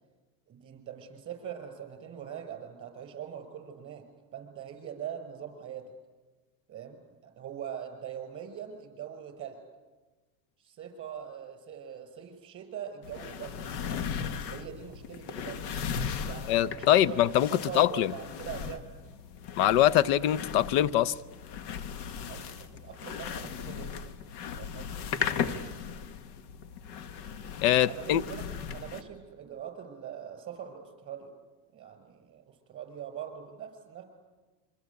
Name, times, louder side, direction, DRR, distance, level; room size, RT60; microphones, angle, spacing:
voice 1, 0.5-4.1 4.3-5.9 6.7-9.6 10.6-14.1 14.5-15.7 16.2-19.0 22.3-24.1 24.5-25.1 27.9-31.3 31.7-34.0, right 9 dB, 25° right, 5.7 m, -42 dB
sound 1, 13.0-29.0, left 7 dB, 75° left, 1.9 m, -37 dB
voice 2, 16.5-18.1 19.6-21.1 27.6-28.2, left 12 dB, 60° left, 0.9 m, -23 dB
27.5 x 24.0 x 8.4 m
supercardioid pair, 125°, 49 cm